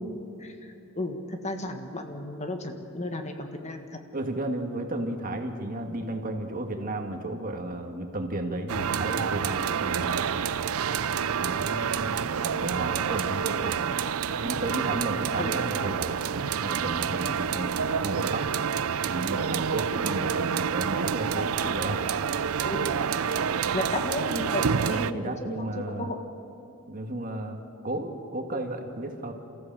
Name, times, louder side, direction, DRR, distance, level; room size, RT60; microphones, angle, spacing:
voice 1, 0.4-3.8 15.4-15.6 22.6-23.3 23.7-26.2, left 1 dB, 35° left, 5 dB, 1.6 m, -34 dB
voice 2, 4.1-10.5 11.4-13.8 14.2-16.2 16.6-18.5 19.1-22.0 24.9-26.1 26.9-29.3, right 1 dB, 40° right, 4 dB, 1.8 m, -33 dB
sound 1, 8.7-25.1, right 7 dB, 85° right, 0.5 m, -28 dB
28.5 x 14.5 x 7.5 m, 2.7 s
head